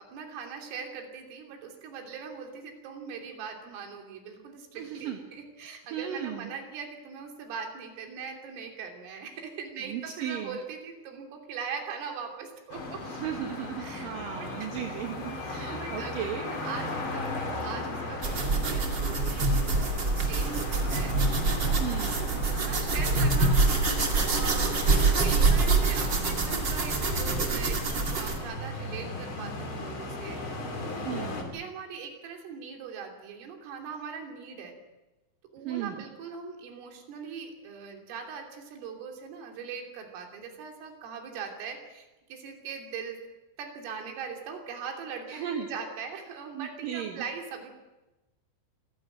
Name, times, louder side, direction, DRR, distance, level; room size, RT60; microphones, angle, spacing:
voice 1, 0.0-13.0 13.8-14.8 15.4-21.2 22.5-24.1 24.3-30.5 30.9-34.8 35.5-43.2 43.6-47.7, right 6 dB, 80° right, 3 dB, 5.6 m, -41 dB
voice 2, 4.7-5.2 5.9-6.5 9.7-10.6 13.0-16.5 21.7-22.4 23.0-23.3 31.0-31.6 35.6-36.1 45.3-45.7 46.5-47.2, right 9 dB, 60° right, 3 dB, 2.4 m, -36 dB
sound 1, 12.7-31.4, left 2 dB, 30° left, 3.0 m, -37 dB
sound 2, 18.2-28.4, right 3 dB, 40° right, 1.7 m, -25 dB
26.5 x 15.5 x 9.1 m, 1.1 s
omnidirectional pair, 5.8 m